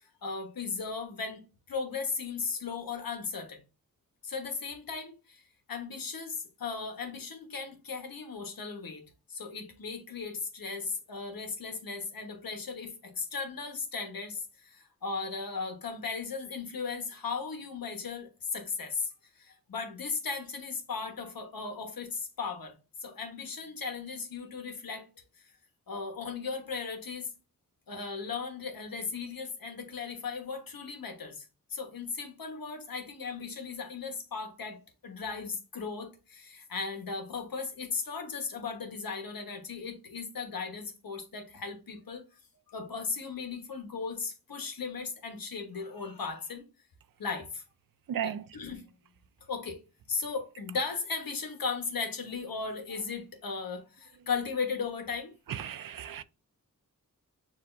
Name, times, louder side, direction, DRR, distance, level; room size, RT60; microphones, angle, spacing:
voice 1, 0.0-1.4 1.7-3.6 4.2-22.7 23.0-25.1 25.4-25.5 25.9-27.3 27.9-42.2 42.7-46.6 47.2-47.6 48.2-48.8 49.4-49.8 50.1-55.3, left 5 dB, 80° left, 1.3 m, -37 dB
voice 2, 48.1-48.4 55.6-56.2, right 9 dB, 75° right, 0.5 m, -34 dB
6.8 x 2.8 x 2.6 m
wide cardioid pair, 100°, 34 cm